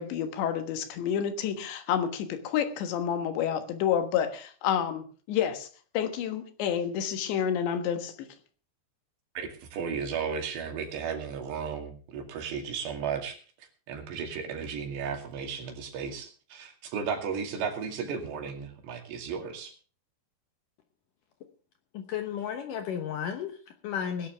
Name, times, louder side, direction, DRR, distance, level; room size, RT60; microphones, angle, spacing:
voice 1, 0.0-5.7 6.0-8.3, left 9 dB, 85° left, 3.7 m, -29 dB
voice 2, 9.4-13.4 13.9-19.7, right 6 dB, 75° right, 4.5 m, -34 dB
voice 3, 21.9-24.3, left 8 dB, 70° left, 2.2 m, -33 dB
19.5 x 11.0 x 3.5 m
omnidirectional pair, 5.0 m